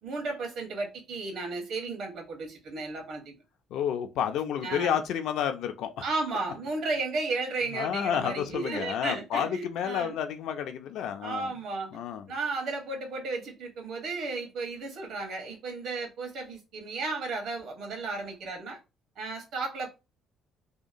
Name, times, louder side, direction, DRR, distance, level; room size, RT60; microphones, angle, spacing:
voice 1, 0.0-3.3 4.6-5.0 6.0-10.1 11.2-11.9 12.3-18.8 19.2-19.9, right 3 dB, 65° right, 1.1 m, -34 dB
voice 2, 3.7-5.9 7.7-11.5 11.9-12.3, left 9 dB, 70° left, 0.4 m, -30 dB
2.8 x 2.2 x 2.5 m
cardioid pair, 135°, 0 cm